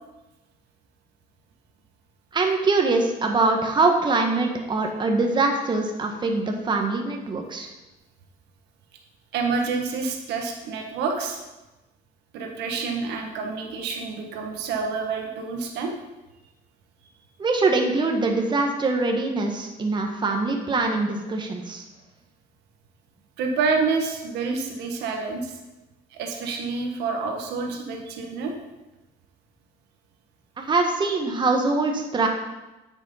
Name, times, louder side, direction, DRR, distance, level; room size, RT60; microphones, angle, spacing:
voice 1, 2.3-7.7 17.4-21.8 30.6-32.3, right 3 dB, 25° right, 2 dB, 1.3 m, -23 dB
voice 2, 9.3-11.4 12.3-15.9 23.4-25.6 26.1-28.5, right 4 dB, 85° right, 2 dB, 1.5 m, -28 dB
9.0 x 6.2 x 5.6 m, 1.0 s
cardioid pair, 110°, 17 cm